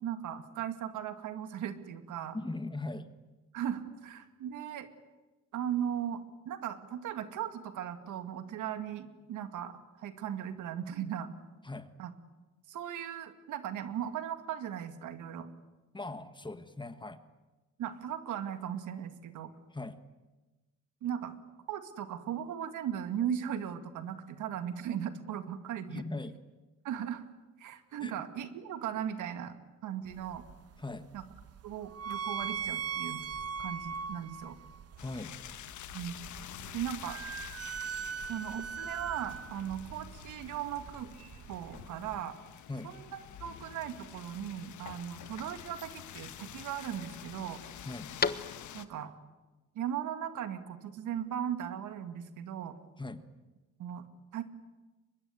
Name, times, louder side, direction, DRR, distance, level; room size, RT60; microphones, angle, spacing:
voice 1, 0.0-2.4 3.5-4.9 5.5-11.3 12.0-12.1 12.7-15.5 17.8-19.5 21.0-21.3 21.7-26.0 26.8-27.2 27.6-29.5 29.8-30.4 31.1-31.2 31.6-33.2 33.6-34.6 35.9-36.2 36.7-37.2 38.3-41.1 41.5-42.4 42.8-47.6 48.7-49.1 49.8-52.8 53.8-54.1 54.3-54.4, right 9 dB, 80° right, 9 dB, 2.2 m, -37 dB
voice 2, 2.3-3.1 11.6-11.9 15.9-17.2 19.7-20.0 25.9-26.4 28.0-28.2 30.8-31.1 35.0-35.3 42.7-42.9 47.8-48.1 53.0-53.2, left 2 dB, 15° left, 11 dB, 1.6 m, -39 dB
sound 1, 30.1-42.2, right 7 dB, 55° right, 1.2 m, -41 dB
sound 2, 35.0-48.8, left 11 dB, 75° left, 1.3 m, -48 dB
sound 3, 40.5-49.0, left 5 dB, 30° left, 1.2 m, -43 dB
23.5 x 22.0 x 9.6 m, 1.2 s
cardioid pair, 90°, 30 cm